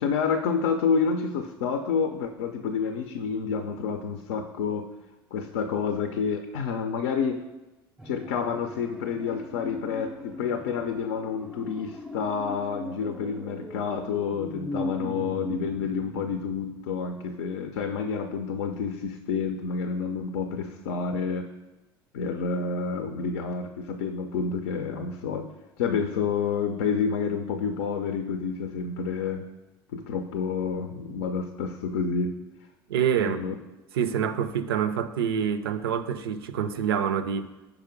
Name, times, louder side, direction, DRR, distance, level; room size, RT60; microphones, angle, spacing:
voice 1, 0.0-4.9 5.3-7.4 8.0-21.5 22.1-25.5 25.8-29.5 29.9-32.4 33.2-33.5, left 5 dB, 75° left, 0.5 m, -29 dB
sound 1, 8.0-17.1 17.4-17.5, equal, 5° right, 0.5 m, -39 dB
voice 2, 32.9-33.4 33.9-37.5, right 8 dB, 85° right, 0.4 m, -26 dB
5.3 x 4.8 x 5.2 m
hypercardioid pair, 70°, 12 cm